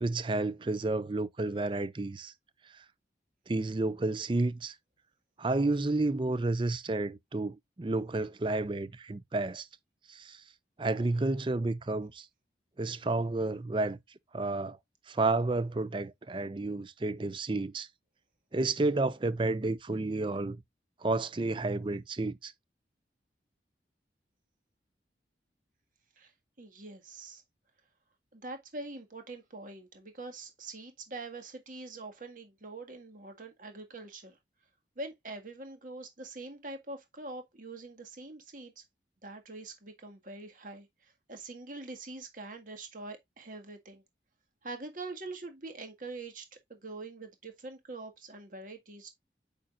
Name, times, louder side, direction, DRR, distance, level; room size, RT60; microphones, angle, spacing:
voice 1, 0.0-2.3 3.5-4.7 5.4-9.7 10.1-10.4 10.8-12.3 12.8-14.0 14.3-14.8 15.1-17.9 18.5-20.6 21.0-22.5, right 2 dB, 30° right, 0.5 m, -31 dB
voice 2, 26.6-27.4 28.3-34.4 35.0-38.8 39.2-40.9 41.3-44.0 44.6-49.1, right 2 dB, 50° right, 1.8 m, -44 dB
8.7 x 5.2 x 2.4 m
head